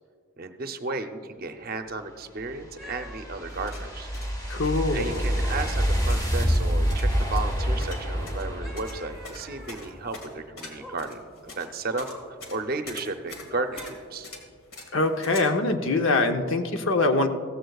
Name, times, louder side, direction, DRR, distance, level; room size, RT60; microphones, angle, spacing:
voice 1, 0.4-4.1 4.9-14.3, right 3 dB, 45° right, 7 dB, 0.6 m, -34 dB
sound 1, 2.4-9.6, equal, 20° left, 1.2 m, -27 dB
sound 2, 2.8-4.4 5.0-7.4 8.6-10.0 10.6-11.0 12.1-12.3 13.5-13.9 15.2-15.6, equal, ahead, 1.6 m, -47 dB
sound 3, 3.5-15.4, left 2 dB, 85° left, 2.0 m, -44 dB
voice 2, 4.5-5.3 14.9-17.3, left 2 dB, 65° left, 6 dB, 0.8 m, -24 dB
15.5 x 14.5 x 2.3 m, 2.1 s
head